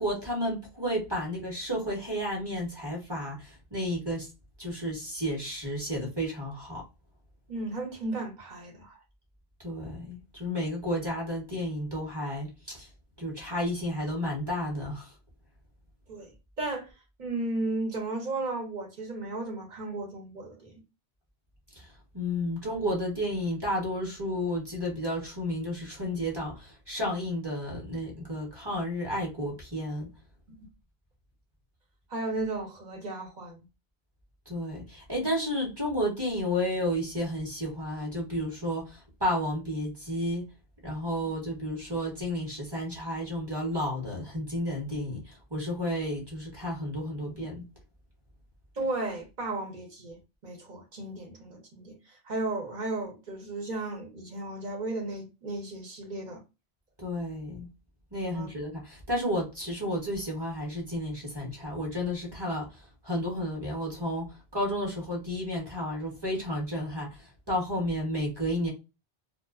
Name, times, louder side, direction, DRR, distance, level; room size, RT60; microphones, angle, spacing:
voice 1, 0.0-4.3 4.6-6.8 9.6-12.9 13.2-15.1 21.7-30.1 34.5-40.5 40.8-47.7 57.0-57.7 58.1-68.7, equal, 25° right, 0.9 m, -32 dB
voice 2, 7.5-9.0 16.1-16.3 16.6-16.9 17.2-20.8 30.5-30.6 32.1-33.6 48.7-56.4 58.3-58.5, right 2 dB, 50° right, 0.9 m, -34 dB
2.4 x 2.3 x 2.3 m
omnidirectional pair, 1.1 m